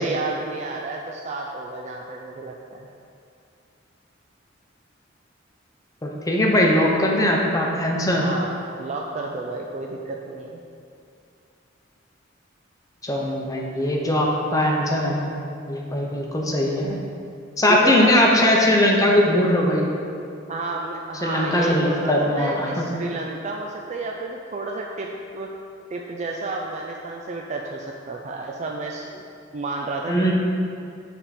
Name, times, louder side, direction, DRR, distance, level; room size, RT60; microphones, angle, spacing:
voice 1, 0.0-2.9 8.1-8.5 8.8-10.6 17.7-18.2 20.5-25.5 25.9-29.2 29.5-30.3, right 3 dB, 35° right, 0 dB, 0.4 m, -31 dB
voice 2, 6.0-8.2 13.0-15.3 15.7-17.0 17.6-19.9 21.2-22.9 30.1-30.3, left 1 dB, 20° left, -1 dB, 0.8 m, -20 dB
8.3 x 3.6 x 4.2 m, 2.4 s
head